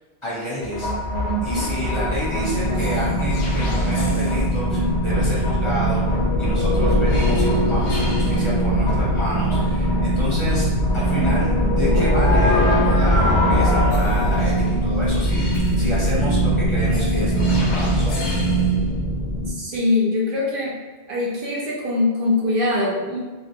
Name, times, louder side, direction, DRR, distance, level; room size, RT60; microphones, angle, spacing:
voice 1, 0.2-0.9 1.4-6.0 6.4-10.7 10.9-18.4, equal, 30° left, -7 dB, 0.7 m, -30 dB
sound 1, 0.6-19.5, equal, 90° left, 0.9 m, -20 dB
voice 2, 1.3-1.7 19.5-20.8 21.1-23.2, left 2 dB, 60° right, -4 dB, 0.7 m, -22 dB
3.2 x 2.2 x 2.6 m, 1.3 s
omnidirectional pair, 1.1 m